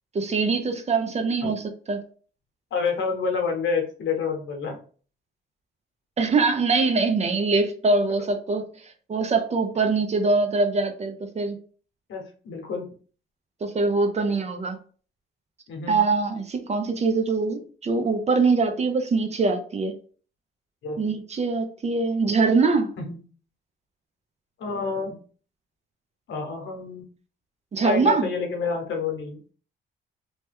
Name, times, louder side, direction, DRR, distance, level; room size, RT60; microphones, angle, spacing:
voice 1, 0.1-2.0 6.2-8.7 9.1-11.6 13.6-14.8 15.9-19.9 21.0-22.9 27.7-28.3, right 4 dB, 35° right, 7 dB, 0.6 m, -23 dB
voice 2, 2.7-4.8 12.1-12.8 15.7-16.0 20.8-21.0 23.0-23.2 24.6-25.2 26.3-27.0 27.8-29.5, left 5 dB, 70° left, 2 dB, 1.0 m, -28 dB
2.9 x 2.2 x 3.3 m, 0.42 s
cardioid pair, 90°, 20 cm